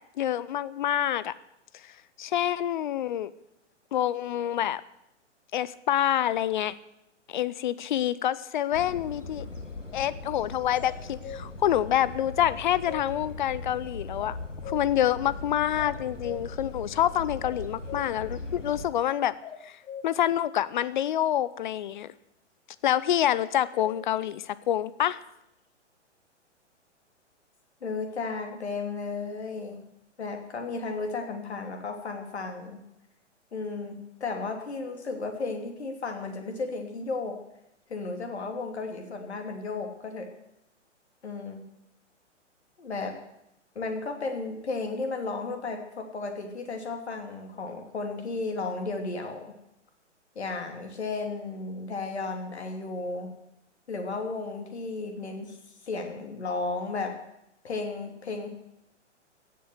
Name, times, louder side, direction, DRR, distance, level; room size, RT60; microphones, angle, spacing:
voice 1, 0.2-1.3 2.2-3.3 3.9-4.8 5.5-6.7 7.3-9.4 9.9-14.4 14.7-19.3 19.6-19.8 20.0-22.1 22.8-25.2, left 11 dB, 40° left, 18 dB, 0.7 m, -27 dB
sound 1, 8.7-18.9, left 3 dB, 85° left, 1.8 m, -39 dB
sound 2, 10.8-11.5 12.4-13.1 14.2-15.0 15.8-16.5 17.4-18.1 19.4-20.1 23.3-24.0, left 7 dB, 10° left, 0.9 m, -41 dB
voice 2, 27.8-29.8 30.2-32.8 33.5-37.4 37.9-40.3 41.2-41.7 42.8-43.1 43.7-49.5 50.3-53.3 53.9-55.6 55.8-57.1 57.6-58.5, left 3 dB, 65° left, 5 dB, 2.8 m, -34 dB
15.5 x 8.4 x 7.9 m, 0.85 s
figure-of-eight pair, 115°, 36 cm